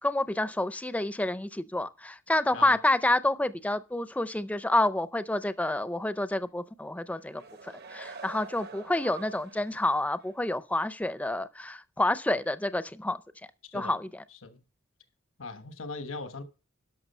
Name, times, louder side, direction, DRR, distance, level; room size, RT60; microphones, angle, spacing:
voice 1, 0.0-13.2 13.7-14.2, left 1 dB, 5° left, 0.5 m, -28 dB
sound 1, 7.1-9.8 10.2-10.3, right 4 dB, 55° right, 0.9 m, -46 dB
voice 2, 15.4-16.4, left 3 dB, 80° left, 1.2 m, -39 dB
12.0 x 6.0 x 5.4 m
head